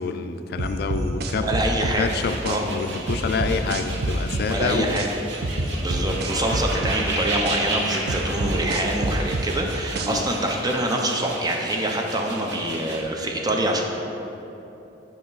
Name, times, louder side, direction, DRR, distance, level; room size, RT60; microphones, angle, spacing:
voice 1, 0.0-1.5 2.0-5.0 10.0-10.3, left 4 dB, 60° left, 8 dB, 0.4 m, -27 dB
sound 1, 0.6-2.6 3.1-5.1 5.4-7.6 8.1-10.3, right 2 dB, 60° right, 0.5 m, -27 dB
voice 2, 1.4-2.1 2.4-2.7 4.4-5.1 5.7-13.8, right 1 dB, 20° right, 1 dB, 0.6 m, -25 dB
sound 2, 2.0-13.0, right 2 dB, 80° right, 0.9 m, -34 dB
7.8 x 4.3 x 3.9 m, 3.0 s
head